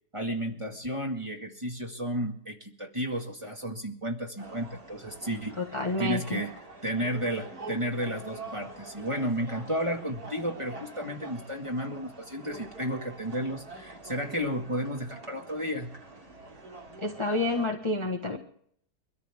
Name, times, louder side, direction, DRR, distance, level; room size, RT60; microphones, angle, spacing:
voice 1, 0.1-6.5 6.8-15.9, equal, 20° right, 1 dB, 2.1 m, -33 dB
sound 1, 4.4-17.7, right 2 dB, 60° right, 3.3 m, -46 dB
voice 2, 5.6-6.4 17.0-18.4, left 2 dB, 20° left, 2 dB, 1.3 m, -29 dB
23.5 x 14.0 x 3.6 m, 0.64 s
omnidirectional pair, 1.8 m